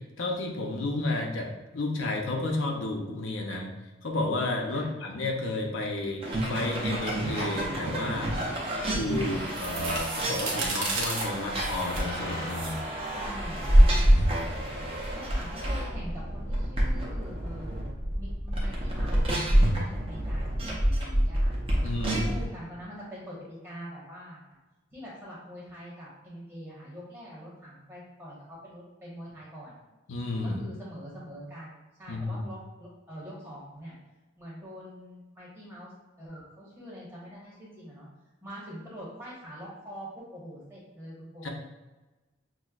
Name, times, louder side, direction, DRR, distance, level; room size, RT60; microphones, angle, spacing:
voice 1, 0.2-3.7 4.0-8.3 8.9-12.8 21.8-22.2 30.1-30.6 32.1-32.4 41.4-41.5, left 2 dB, 80° left, 1 dB, 0.6 m, -31 dB
sound 1, 6.2-22.4, right 1 dB, 30° right, 0.7 m, -29 dB
sound 2, 8.9-15.7, right 1 dB, 75° right, 0.9 m, -26 dB
voice 2, 13.1-14.4 15.1-19.2 19.5-21.5 22.0-24.4 24.9-29.8 30.4-33.9 34.4-35.9 36.2-38.1 38.4-41.5, equal, 10° right, -6 dB, 1.1 m, -44 dB
6.1 x 2.1 x 2.4 m, 1.1 s
head